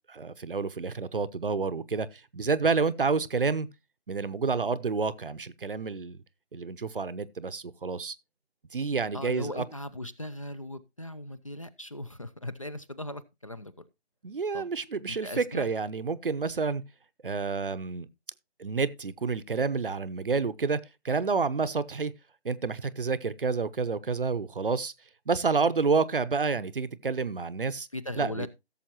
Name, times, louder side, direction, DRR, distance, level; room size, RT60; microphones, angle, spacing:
voice 1, 0.1-3.7 4.1-6.2 6.5-8.1 8.7-9.6 14.2-16.8 17.2-18.1 18.6-22.1 22.4-24.9 25.3-27.9 28.2-28.5, right 4 dB, 55° right, 0.8 m, -29 dB
voice 2, 9.1-13.9 14.5-14.7 15.1-15.7 27.9-28.5, left 1 dB, 30° left, 0.5 m, -38 dB
16.5 x 7.1 x 2.9 m
figure-of-eight pair, 160°, 32 cm